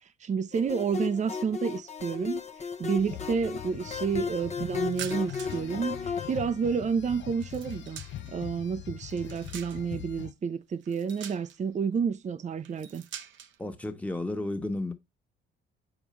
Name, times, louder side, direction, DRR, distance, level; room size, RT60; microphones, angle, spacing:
voice 1, 0.0-2.4 2.8-8.0 8.3-13.1, right 6 dB, 35° right, 0.6 m, -30 dB
sound 1, 0.5-6.4, left 5 dB, 35° left, 1.0 m, -35 dB
sound 2, 3.0-10.3, left 12 dB, 70° left, 0.6 m, -42 dB
sound 3, 4.8-5.7 6.0-8.4 8.9-10.0 10.8-11.8 12.6-13.6, right 9 dB, 70° right, 0.8 m, -45 dB
voice 2, 13.6-14.9, left 2 dB, 5° left, 1.3 m, -32 dB
7.2 x 4.8 x 3.1 m
cardioid pair, 90°, 20 cm